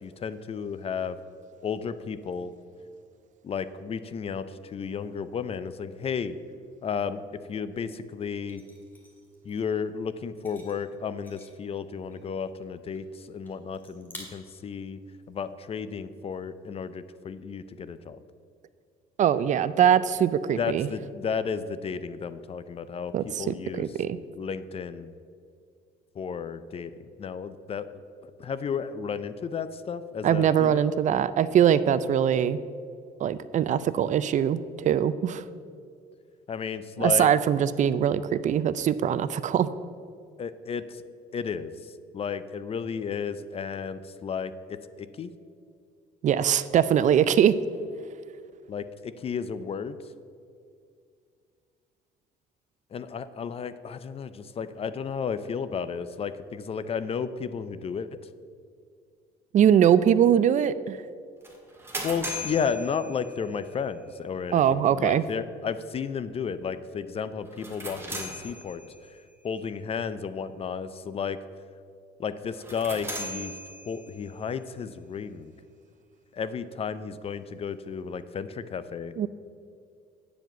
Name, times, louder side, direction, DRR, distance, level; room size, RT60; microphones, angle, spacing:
voice 1, 0.0-1.2 1.6-2.5 3.4-6.4 6.8-8.6 9.4-15.0 15.3-18.2 20.5-23.9 24.3-25.1 26.2-26.9 27.2-28.0 28.4-30.9 36.5-37.3 40.4-41.0 41.3-41.7 42.1-45.3 48.7-50.0 52.9-58.2 62.0-68.8 69.4-71.4 72.2-73.5 73.9-75.5 76.3-79.1, left 6 dB, 35° left, 13 dB, 0.5 m, -33 dB
sound 1, 7.8-7.9 8.5-9.7 10.3-11.7 12.1-12.3 12.6-13.1 13.4-13.5 13.7-14.2, left 1 dB, 10° left, 2.1 m, -50 dB
voice 2, 19.2-20.9 23.1-24.2 30.2-32.6 33.2-35.4 37.0-39.7 46.2-47.5 59.5-61.0 64.5-65.3 79.2-79.3, right 9 dB, 45° right, 15 dB, 0.4 m, -22 dB
sound 2, 61.4-63.7 67.5-69.1 72.5-74.3, equal, 15° right, 1.9 m, -38 dB
9.2 x 5.0 x 7.8 m, 2.3 s
cardioid pair, 110°, 17 cm